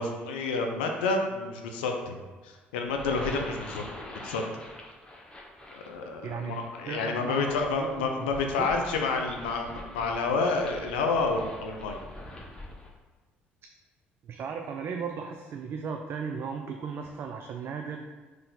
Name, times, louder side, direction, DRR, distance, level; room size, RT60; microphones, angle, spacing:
voice 1, 0.0-2.2 2.4-3.8 4.2-4.5 5.7-12.0, left 3 dB, 75° left, 3 dB, 0.4 m, -29 dB
sound 1, 2.9-12.9, left 1 dB, 15° left, 0.9 m, -44 dB
voice 2, 6.2-9.0 14.2-18.1, right 6 dB, 45° right, 3 dB, 0.3 m, -36 dB
3.8 x 2.7 x 3.8 m, 1.3 s
hypercardioid pair, 50°, 5 cm